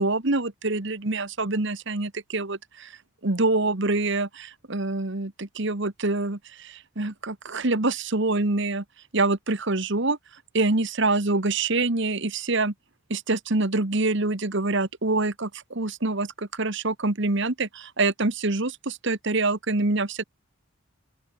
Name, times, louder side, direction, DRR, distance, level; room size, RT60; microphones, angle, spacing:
voice 1, 0.0-2.9 3.2-8.8 9.1-10.2 10.5-12.7 13.1-20.2, right 2 dB, 55° right, 1.4 m, -25 dB
open air
head